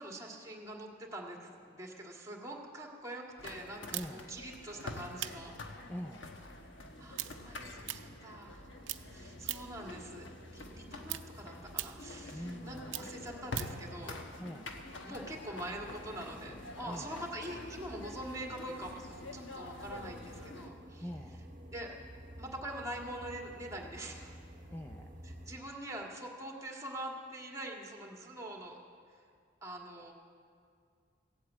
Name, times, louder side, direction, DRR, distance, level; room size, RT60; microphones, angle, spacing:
voice 1, 0.0-5.5 7.0-8.8 9.1-14.2 15.0-21.1 21.7-21.9 22.4-24.4 25.2-28.8 29.1-29.2 29.6-30.1, right 1 dB, 20° right, 0 dB, 1.8 m, -44 dB
sound 1, 3.4-20.7, left 2 dB, 85° left, 1.2 m, -47 dB
voice 2, 3.9-4.2 5.9-6.2 12.3-13.0 14.4-14.7 16.8-17.1 21.0-21.4 24.7-25.1, equal, 10° left, 3 dB, 0.5 m, -43 dB
sound 2, 3.9-8.6 8.8-9.9 10.2-13.9, right 14 dB, 80° right, 0.6 m, -42 dB
sound 3, 6.4-25.6, equal, 45° right, 1.2 m, -53 dB
16.0 x 8.2 x 8.3 m, 2.2 s
head